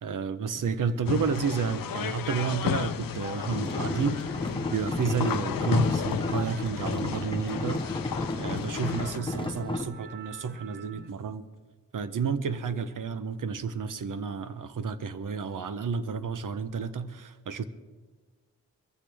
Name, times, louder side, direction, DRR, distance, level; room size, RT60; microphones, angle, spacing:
voice 1, 0.0-7.8 8.4-11.5 11.9-17.6, right 5 dB, 70° right, 12 dB, 0.8 m, -31 dB
sound 1, 0.6-11.1, right 5 dB, 30° right, 0.5 m, -46 dB
sound 2, 1.0-9.2, left 9 dB, 90° left, 0.6 m, -33 dB
sound 3, 3.5-9.9, left 2 dB, 15° left, 0.9 m, -33 dB
22.0 x 15.0 x 3.5 m, 1.4 s
wide cardioid pair, 165°, 33 cm